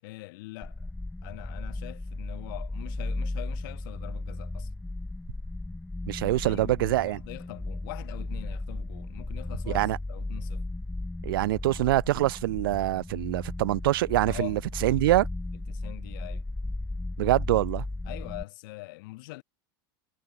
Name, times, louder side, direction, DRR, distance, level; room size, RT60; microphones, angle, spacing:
voice 1, 0.0-0.9 1.2-4.7 6.2-10.6 14.3-14.6 15.7-16.4 18.0-19.4, left 22 dB, 75° left, 5.5 m, -43 dB
sound 1, 0.6-18.4, left 2 dB, 5° left, 1.1 m, -35 dB
voice 2, 6.1-7.2 9.7-10.0 11.2-15.3 17.2-17.8, right 16 dB, 85° right, 1.0 m, -25 dB
supercardioid pair, 125°, 11 cm